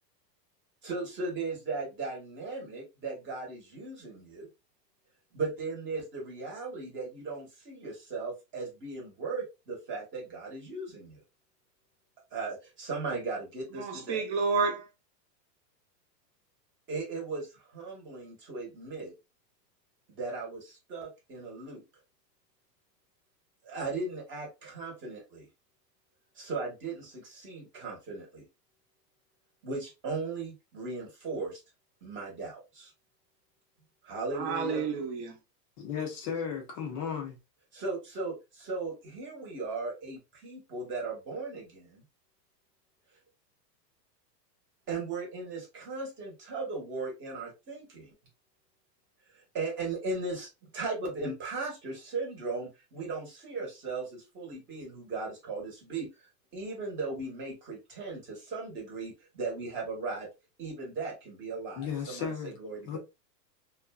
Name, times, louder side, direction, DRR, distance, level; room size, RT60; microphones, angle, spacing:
voice 1, 0.8-4.5 5.3-11.2 12.3-14.2 16.9-19.1 20.1-21.8 23.6-25.5 26.4-28.4 29.6-31.6 32.0-32.9 34.0-34.8 37.7-42.0 44.9-48.1 49.3-56.1 56.5-60.3 60.6-63.0, right 3 dB, 25° right, 1.0 m, -37 dB
voice 2, 13.8-14.9 34.3-35.4, right 5 dB, 40° right, 0.7 m, -30 dB
voice 3, 35.8-37.4 61.8-62.5 62.9-63.0, left 7 dB, 25° left, 0.5 m, -35 dB
2.6 x 2.2 x 2.2 m
supercardioid pair, 145°, 50 cm